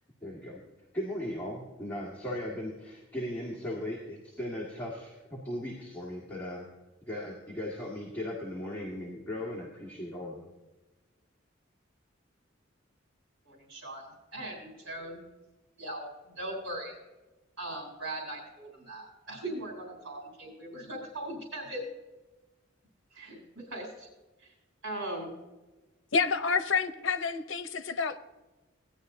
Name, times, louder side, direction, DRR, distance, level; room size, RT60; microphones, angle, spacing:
voice 1, 0.2-0.6 0.9-6.6 7.0-10.5, left 1 dB, 10° left, -6 dB, 1.7 m, -37 dB
voice 2, 13.4-14.0 14.3-15.2 15.8-17.0 17.6-21.9 23.1-23.4 23.7-24.1 24.4-24.5 24.8-25.3, right 1 dB, 85° right, -1 dB, 3.4 m, -39 dB
voice 3, 26.1-28.2, left 5 dB, 70° left, 10 dB, 0.7 m, -28 dB
16.5 x 10.5 x 2.7 m, 1.1 s
head